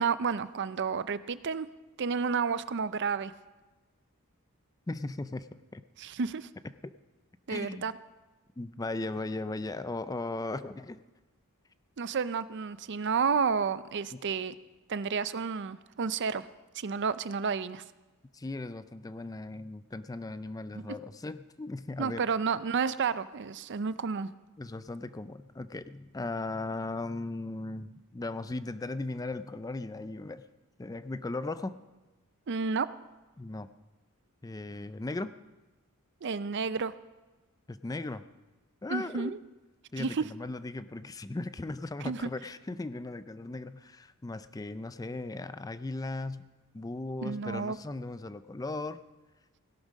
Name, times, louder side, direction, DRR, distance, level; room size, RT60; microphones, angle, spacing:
voice 1, 0.0-1.7 2.0-3.3 6.0-6.5 7.5-7.9 12.0-14.5 14.9-16.5 16.8-17.8 20.7-20.8 22.0-24.3 32.5-32.9 36.2-36.9 38.9-39.4 40.0-40.2 42.0-42.2 47.2-47.8, right 5 dB, 50° right, 15 dB, 0.5 m, -31 dB
voice 2, 4.9-5.8 6.8-6.9 7.5-7.9 8.6-11.0 14.1-14.2 18.3-22.2 24.6-30.4 30.8-31.8 33.4-33.7 34.4-35.3 37.7-38.2 38.8-39.3 39.9-46.5 46.7-49.0, left 2 dB, 15° left, 13 dB, 0.4 m, -37 dB
17.0 x 11.5 x 5.1 m, 1.2 s
head